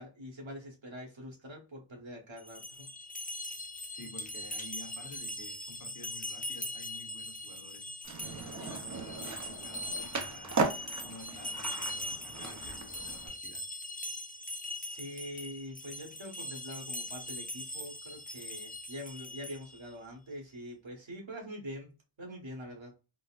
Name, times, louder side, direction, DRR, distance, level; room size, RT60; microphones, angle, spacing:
voice 1, 0.0-2.9 14.8-21.9 22.2-22.9, equal, 65° right, 1.3 m, -44 dB
sound 1, 2.4-19.8, left 1 dB, 15° left, 0.6 m, -41 dB
voice 2, 3.9-7.9 8.2-10.6 11.0-13.6, left 2 dB, 40° left, 1.0 m, -51 dB
Skateboard, 8.0-13.3, right 3 dB, 35° right, 0.6 m, -37 dB
3.9 x 2.1 x 2.4 m
wide cardioid pair, 55°, 50 cm